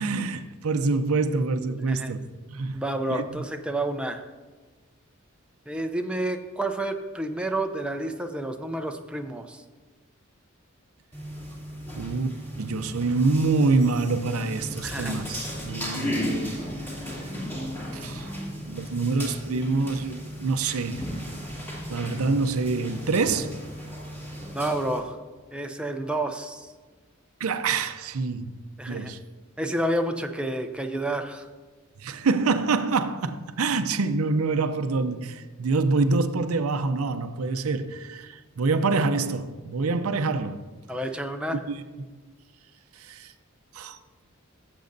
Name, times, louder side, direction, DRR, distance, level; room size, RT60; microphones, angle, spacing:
voice 1, 0.0-2.8 3.1-3.2 11.9-16.6 17.9-18.3 18.7-21.0 21.9-23.6 27.4-28.6 28.8-29.2 32.0-40.6 41.5-41.8 43.0-43.3 43.7-44.0, right 3 dB, 90° right, 0.6 m, -26 dB
voice 2, 2.7-4.2 5.7-9.6 14.8-15.2 24.5-25.2 25.5-26.7 28.8-29.1 29.6-31.5 40.9-41.6, right 1 dB, 5° right, 0.5 m, -30 dB
sound 1, 11.1-25.0, equal, 10° left, 2.5 m, -35 dB
16.0 x 7.6 x 2.6 m
head